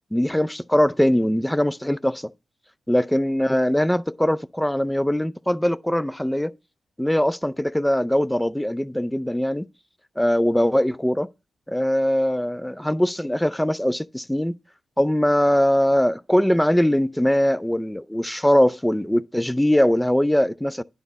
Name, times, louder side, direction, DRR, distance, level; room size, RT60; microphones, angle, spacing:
voice 1, 0.1-2.3 2.9-6.5 7.0-9.7 10.2-11.3 11.7-14.5 15.0-20.8, equal, 5° left, 0.5 m, -21 dB
10.0 x 4.0 x 6.1 m
supercardioid pair, 45°, 0 cm